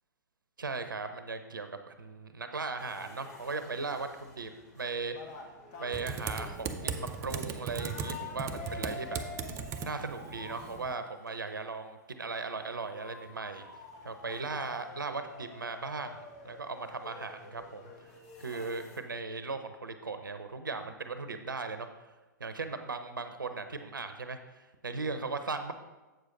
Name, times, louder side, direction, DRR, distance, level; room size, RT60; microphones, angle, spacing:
voice 1, 0.6-5.2 5.8-9.2 9.8-13.7 14.0-17.9 18.4-22.1 22.4-25.7, right 4 dB, 85° right, 9 dB, 0.7 m, -38 dB
sound 1, 2.8-10.0 10.7-10.9 11.3-11.4 12.0-12.1 12.5-12.6 12.8-19.0, left 4 dB, 45° left, 1.1 m, -49 dB
sound 2, 5.6-10.8 13.0-18.8, left 2 dB, 60° left, 1.7 m, -52 dB
Typing, 5.9-10.9, right 6 dB, 25° right, 0.5 m, -38 dB
7.8 x 6.6 x 3.8 m, 1.2 s
figure-of-eight pair, 115°, 11 cm